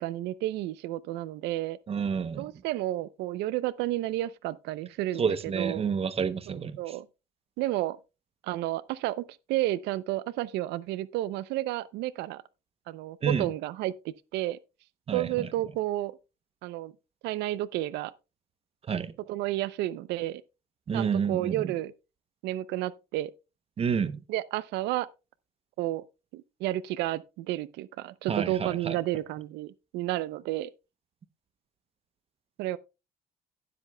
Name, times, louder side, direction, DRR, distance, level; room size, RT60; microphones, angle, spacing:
voice 1, 0.0-1.8 2.4-5.9 6.8-7.1 7.6-8.0 8.4-12.4 12.9-14.6 15.1-16.2 16.6-16.9 17.2-18.1 19.3-20.4 20.9-21.9 22.4-23.3 24.3-25.1 25.8-26.0 26.3-30.7 32.6-32.8, right 15 dB, 90° right, 0.6 m, -31 dB
voice 2, 1.9-2.5 5.2-7.0 13.2-13.5 15.1-15.5 18.9-19.1 20.9-21.7 23.8-24.2 28.3-29.0, right 6 dB, 35° right, 0.8 m, -29 dB
17.5 x 7.7 x 2.2 m
cardioid pair, 110°, 17 cm